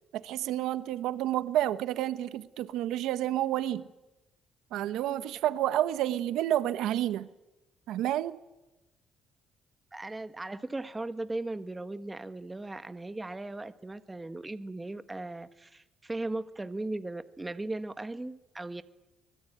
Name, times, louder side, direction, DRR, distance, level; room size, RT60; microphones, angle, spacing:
voice 1, 0.1-3.9 4.7-7.3 7.9-8.4, right 12 dB, 85° right, 1.0 m, -30 dB
voice 2, 9.9-18.8, right 2 dB, 15° right, 1.1 m, -37 dB
24.0 x 20.5 x 9.0 m
cardioid pair, 105°, 0 cm